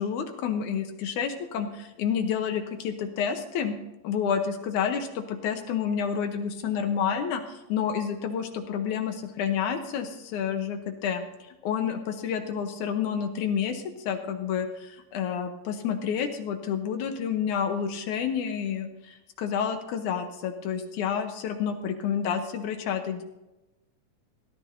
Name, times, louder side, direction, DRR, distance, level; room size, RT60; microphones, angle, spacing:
voice 1, 0.0-3.8 4.0-11.2 11.6-23.2, left 7 dB, 75° left, 6 dB, 2.2 m, -29 dB
18.0 x 13.0 x 2.7 m, 0.99 s
omnidirectional pair, 3.8 m